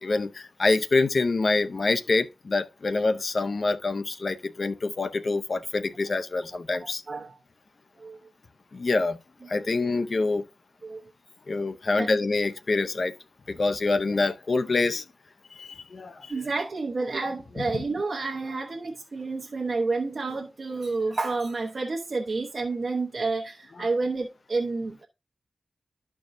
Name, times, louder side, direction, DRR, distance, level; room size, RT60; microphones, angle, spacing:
voice 1, 0.0-7.0 8.7-9.2 9.5-10.4 11.5-13.1 13.5-15.0 15.6-16.3 17.7-17.8 23.8-23.9, left 3 dB, 60° left, 0.6 m, -26 dB
voice 2, 16.3-25.1, right 3 dB, 60° right, 1.0 m, -29 dB
12.5 x 4.6 x 2.6 m
wide cardioid pair, 95°, 0 cm